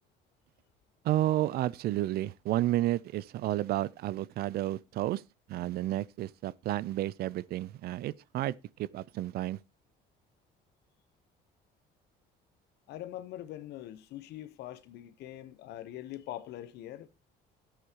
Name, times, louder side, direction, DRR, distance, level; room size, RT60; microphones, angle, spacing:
voice 1, 1.0-5.2 5.5-9.6, right 14 dB, 65° right, 0.5 m, -31 dB
voice 2, 12.9-17.1, left 13 dB, 80° left, 0.9 m, -43 dB
11.5 x 8.1 x 2.9 m
cardioid pair, 110°, 17 cm